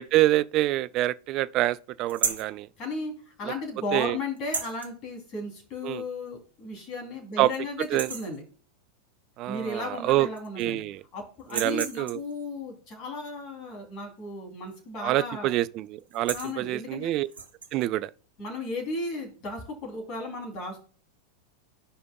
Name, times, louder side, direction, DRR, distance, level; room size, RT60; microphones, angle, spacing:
voice 1, 0.0-2.7 3.9-4.2 5.8-6.0 7.4-7.5 7.9-8.1 9.4-10.3 10.6-11.0 11.5-12.2 15.0-17.3 17.7-18.1, right 16 dB, 40° right, 0.3 m, -26 dB
sound 1, 2.1-2.5 4.4-4.9 6.3-6.4 6.8-6.9 7.3-7.6 7.8-8.4 9.7-9.8 10.1-10.8 11.4-12.3 14.7-15.0 15.3-15.5 16.0-16.6 17.2-17.7, right 5 dB, 70° right, 0.9 m, -34 dB
voice 2, 2.8-8.4 9.5-10.8 11.1-15.6 16.3-17.1 18.4-20.8, left 2 dB, 40° left, 2.9 m, -35 dB
14.0 x 5.1 x 2.2 m
figure-of-eight pair, 90°, 0 cm